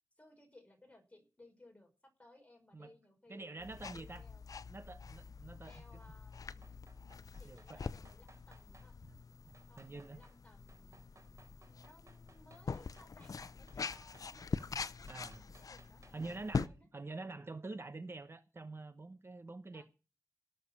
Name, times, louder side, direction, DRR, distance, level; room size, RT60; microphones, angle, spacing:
voice 1, 0.2-4.4 5.6-6.6 7.4-8.9 9.7-11.0 11.4-16.9 19.7-19.8, left 1 dB, 25° left, 5.2 m, -62 dB
voice 2, 3.3-4.3 4.7-6.0 7.4-7.9 9.0-9.2 9.5-10.2 15.1-15.4 16.1-19.8, right 3 dB, 40° right, 1.0 m, -47 dB
sound 1, 3.6-16.7, left 5 dB, 75° left, 0.6 m, -44 dB
sound 2, 6.0-8.9 9.5-10.4 10.7-16.3 16.6-16.7, right 3 dB, 60° right, 4.4 m, -64 dB
18.0 x 6.9 x 7.3 m
wide cardioid pair, 80°, 6 cm